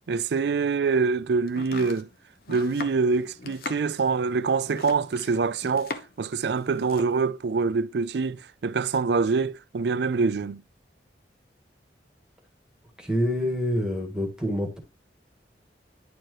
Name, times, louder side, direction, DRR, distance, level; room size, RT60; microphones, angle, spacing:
voice 1, 0.1-2.1 2.5-10.6, right 4 dB, 65° right, 0.4 m, -25 dB
Domestic sounds home sounds, 1.5-6.3 6.6-7.2, left 3 dB, 55° left, 0.9 m, -39 dB
voice 2, 13.0-14.8, equal, 5° right, 1.7 m, -26 dB
10.0 x 4.6 x 3.0 m
head